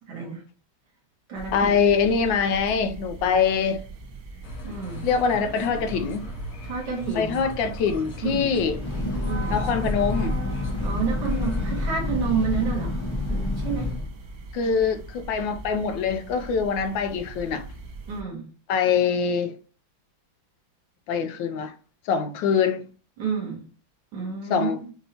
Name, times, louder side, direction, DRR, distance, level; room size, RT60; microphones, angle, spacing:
voice 1, 0.1-0.4 1.3-1.7 4.6-5.0 6.6-7.4 8.2-8.5 9.2-9.6 10.8-13.0 13.3-13.9 18.1-18.5 23.2-23.6 24.1-24.7, right 5 dB, 60° right, 2.2 m, -29 dB
sound 1, 1.3-18.2, right 3 dB, 85° right, 1.7 m, -42 dB
voice 2, 1.5-3.8 5.0-6.2 7.1-8.8 9.5-10.4 14.5-17.7 18.7-19.6 21.1-21.7 22.1-22.9 24.5-24.8, left 6 dB, 75° left, 1.2 m, -24 dB
sound 2, 4.4-11.7, left 1 dB, 55° left, 1.0 m, -39 dB
Breathing / Train, 8.6-14.1, left 2 dB, 35° left, 0.4 m, -28 dB
6.6 x 2.8 x 2.8 m
omnidirectional pair, 2.2 m